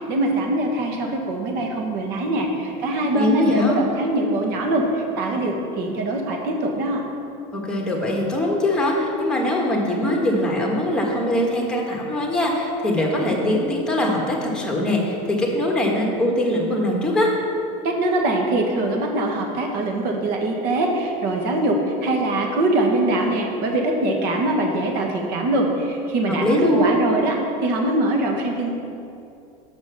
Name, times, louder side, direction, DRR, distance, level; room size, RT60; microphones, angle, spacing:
voice 1, 0.0-7.0 17.8-26.4 26.7-28.7, right 1 dB, 60° right, 1 dB, 1.5 m, -23 dB
voice 2, 3.2-3.8 7.5-17.3 26.3-27.0, left 1 dB, 5° left, -1 dB, 1.5 m, -22 dB
6.3 x 5.9 x 6.2 m, 2.6 s
supercardioid pair, 125°, 19 cm